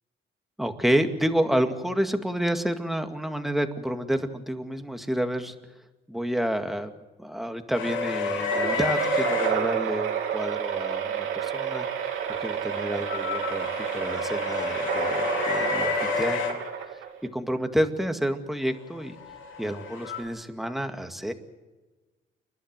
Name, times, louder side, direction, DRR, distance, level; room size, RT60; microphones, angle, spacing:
voice 1, 0.6-5.5 6.1-6.9 7.2-12.1 12.4-16.6 17.3-19.1 19.6-21.3, equal, ahead, 6 dB, 2.1 m, -29 dB
sound 1, 7.7-9.5 11.9-16.5 18.9-20.2, left 5 dB, 80° left, 4.5 m, -30 dB
sound 2, 8.5-17.3, right 8 dB, 85° right, 3.0 m, -29 dB
29.5 x 12.0 x 9.1 m, 1.2 s
cardioid pair, 90°, 20 cm